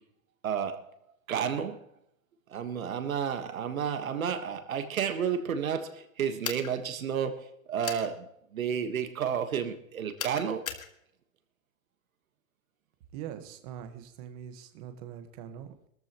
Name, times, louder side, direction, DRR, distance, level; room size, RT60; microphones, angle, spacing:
voice 1, 0.4-0.9 1.3-1.8 2.5-10.7, right 8 dB, 80° right, 8 dB, 1.5 m, -31 dB
sound 1, 6.4-6.7 7.8-8.1 10.2-10.9, left 8 dB, 85° left, 2.0 m, -36 dB
voice 2, 13.1-15.9, right 9 dB, 30° right, 8 dB, 1.4 m, -43 dB
21.5 x 14.0 x 3.0 m, 0.73 s
hypercardioid pair, 160°, 40 cm